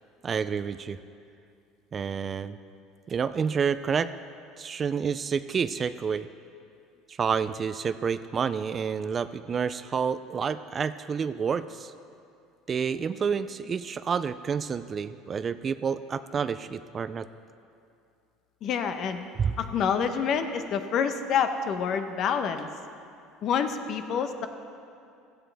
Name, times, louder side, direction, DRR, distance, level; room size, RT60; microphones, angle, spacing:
voice 1, 0.2-1.0 1.9-2.6 3.1-4.1 4.6-6.3 7.2-11.9 12.7-17.3 19.4-19.5, right 6 dB, 25° right, 13 dB, 0.3 m, -29 dB
voice 2, 18.6-19.3 19.6-22.7 23.4-24.5, left 7 dB, 45° left, 8 dB, 0.9 m, -27 dB
16.5 x 14.0 x 3.4 m, 2.5 s
cardioid pair, 145°, 0 cm